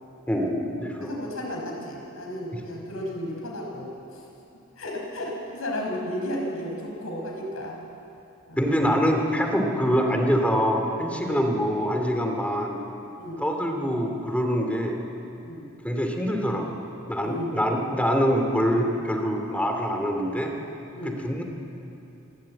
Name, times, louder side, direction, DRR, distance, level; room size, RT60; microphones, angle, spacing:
voice 1, 0.3-1.1 8.6-12.8 13.4-15.0 15.8-20.5 21.0-21.4, equal, 5° left, 2 dB, 2.5 m, -25 dB
voice 2, 1.0-4.2 4.8-7.8 8.5-8.7 11.2-11.4 13.2-13.4 15.4-15.7 17.2-17.6 20.9-21.2, left 1 dB, 80° left, -1 dB, 5.5 m, -33 dB
27.5 x 13.0 x 8.9 m, 2.9 s
head